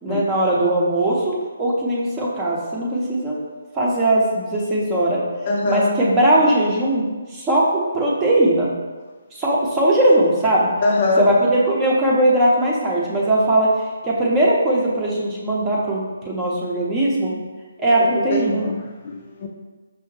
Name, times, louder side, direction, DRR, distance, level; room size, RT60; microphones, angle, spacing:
voice 1, 0.0-3.4 3.7-5.2 5.7-7.0 7.3-8.7 9.4-10.7 11.2-13.7 14.0-17.3 17.8-18.7, right 1 dB, 15° right, -4 dB, 0.7 m, -19 dB
voice 2, 5.4-5.9 10.8-11.3 17.8-19.5, left 2 dB, 40° left, 2 dB, 0.4 m, -23 dB
5.7 x 2.1 x 3.1 m, 1.3 s
hypercardioid pair, 155°, 0 cm